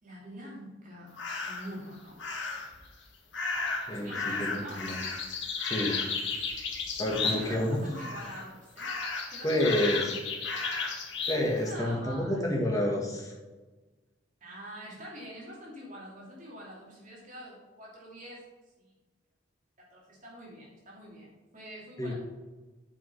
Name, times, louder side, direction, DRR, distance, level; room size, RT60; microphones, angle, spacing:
voice 1, 0.0-2.2 3.9-4.9 6.1-6.3 7.2-8.9 9.3-10.3 11.5-12.7 14.4-18.4 18.8-18.9 19.8-22.1, equal, 45° right, -5 dB, 2.9 m, -45 dB
sound 1, 1.2-1.7 2.2-2.8 3.3-7.7 7.9-8.5 8.8-11.4, left 4 dB, 65° left, 1.6 m, -34 dB
voice 2, 3.9-5.0 5.6-6.0 7.0-7.8 9.4-10.1 11.3-13.3 22.0-22.1, left 1 dB, 20° left, -2 dB, 1.9 m, -29 dB
8.2 x 5.4 x 5.5 m, 1.2 s
head